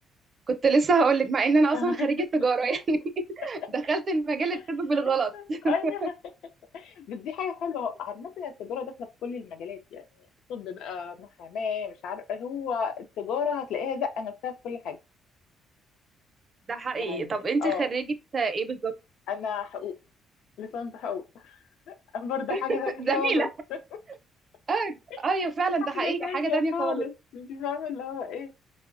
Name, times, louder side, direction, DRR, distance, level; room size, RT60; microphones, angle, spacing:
voice 1, 0.5-3.0 3.4-5.7 16.7-18.1 18.3-18.9 22.5-22.6 23.0-23.5 24.7-24.9 25.2-27.0, right 3 dB, 30° right, 0.5 m, -25 dB
voice 2, 1.7-2.1 4.5-4.6 5.3-6.0 6.7-8.9 9.2-10.0 10.5-15.0 16.9-17.9 19.3-20.0 20.6-21.6 21.9-23.5 25.1-25.2 25.8-28.5, left 7 dB, 75° left, 0.4 m, -33 dB
4.4 x 2.0 x 2.4 m
cardioid pair, 145°, 0 cm